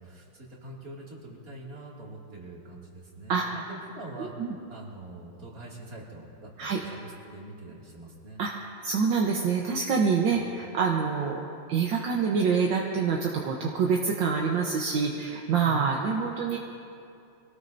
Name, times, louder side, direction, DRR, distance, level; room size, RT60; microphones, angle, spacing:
voice 1, 0.0-4.3 4.7-8.4 10.3-10.4 15.6-16.0, right 2 dB, 45° right, -4 dB, 2.9 m, -44 dB
voice 2, 4.2-4.5 6.6-6.8 8.4-8.5 8.8-11.4 11.7-16.6, right 5 dB, 70° right, -1 dB, 1.7 m, -26 dB
24.5 x 18.0 x 2.7 m, 2.6 s
omnidirectional pair, 2.1 m